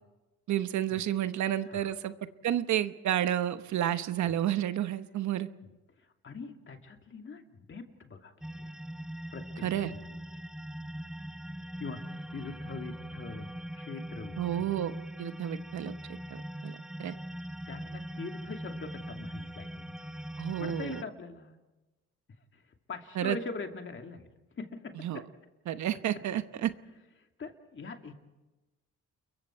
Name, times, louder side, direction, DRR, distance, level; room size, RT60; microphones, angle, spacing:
voice 1, 0.5-2.1 2.4-5.5 9.6-9.9 14.4-14.9 15.2-16.7 17.0-17.1 20.4-21.0 23.2-23.4 25.0-25.2 25.7-26.7, right 11 dB, 70° right, 12 dB, 1.0 m, -31 dB
voice 2, 6.0-8.7 9.3-10.1 11.8-14.8 17.7-20.2 20.6-21.6 22.3-24.3 24.6-25.3 27.2-28.1, left 4 dB, 40° left, 4 dB, 2.7 m, -43 dB
sound 1, 8.4-21.0, equal, ahead, 0.7 m, -41 dB
29.0 x 22.5 x 4.6 m, 1.1 s
cardioid pair, 90°, 30 cm